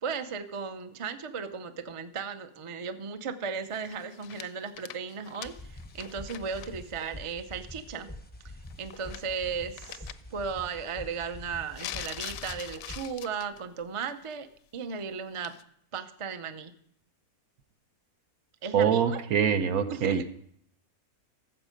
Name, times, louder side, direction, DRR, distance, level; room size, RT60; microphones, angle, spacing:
voice 1, 0.0-8.1 8.8-14.5 14.7-15.6 15.9-16.7 18.6-19.2 19.9-20.2, right 6 dB, 45° right, 9 dB, 0.4 m, -36 dB
sound 1, 3.7-6.7 7.0-7.1 8.7-9.4 9.8-10.1 11.7-13.6 14.0-14.3 15.4-15.6, left 11 dB, 70° left, 0.9 m, -43 dB
sound 2, 5.4-13.1, left 1 dB, 10° left, 0.5 m, -45 dB
voice 2, 18.7-20.2, right 7 dB, 70° right, 10 dB, 1.2 m, -24 dB
14.5 x 7.4 x 5.1 m, 0.67 s
omnidirectional pair, 1.6 m